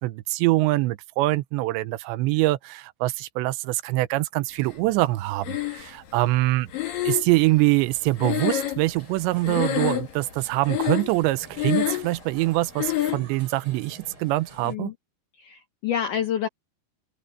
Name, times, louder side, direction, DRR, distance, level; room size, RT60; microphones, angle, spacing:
voice 1, 0.0-6.7 7.0-14.9, right 19 dB, 85° right, 3.0 m, -24 dB
Breathing, 5.4-6.2 6.7-9.2 9.4-10.3 10.6-11.2 11.5-12.2 12.8-13.3, left 13 dB, 60° left, 3.4 m, -27 dB
sound 1, 7.8-14.7, right 2 dB, 30° right, 8.2 m, -49 dB
voice 2, 15.4-16.5, left 9 dB, 80° left, 1.8 m, -28 dB
open air
omnidirectional pair, 5.1 m